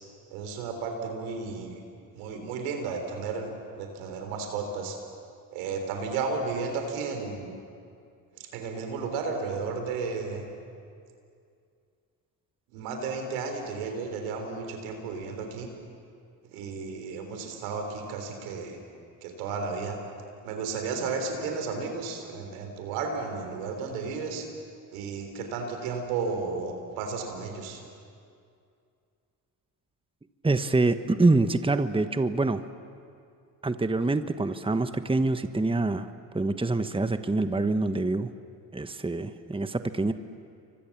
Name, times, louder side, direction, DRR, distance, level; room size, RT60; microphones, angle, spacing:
voice 1, 0.3-1.8 2.2-5.0 5.5-7.6 8.3-10.5 12.7-15.7 16.5-18.8 19.2-20.0 20.4-24.5 24.9-27.8, right 4 dB, 90° right, 4 dB, 3.8 m, -33 dB
voice 2, 30.4-32.6 33.6-36.1 36.3-38.3 38.7-40.1, right 2 dB, 10° right, 10 dB, 1.2 m, -25 dB
29.5 x 24.5 x 7.3 m, 2.4 s
hypercardioid pair, 55°, 43 cm